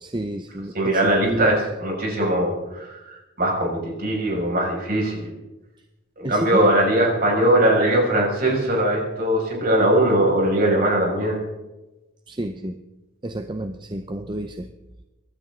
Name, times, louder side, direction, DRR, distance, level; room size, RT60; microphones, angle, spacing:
voice 1, 0.0-1.6 6.2-6.7 12.3-12.8 13.2-14.7, right 1 dB, 25° right, 7 dB, 0.7 m, -30 dB
voice 2, 0.7-5.3 6.2-11.4, right 1 dB, 45° right, -1 dB, 6.2 m, -20 dB
25.0 x 12.5 x 3.8 m, 1.0 s
head